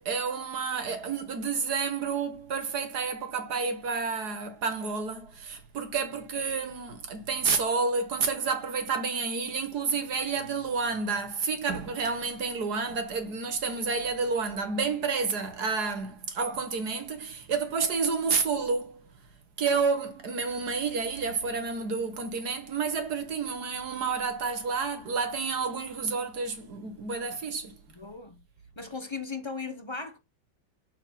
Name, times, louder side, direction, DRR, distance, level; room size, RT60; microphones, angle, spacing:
voice 1, 0.0-19.0 19.6-27.7, right 5 dB, 65° right, 1.8 m, -30 dB
voice 2, 27.9-28.4 28.8-30.2, left 4 dB, 30° left, 0.5 m, -37 dB
6.3 x 6.2 x 5.8 m
omnidirectional pair, 1.9 m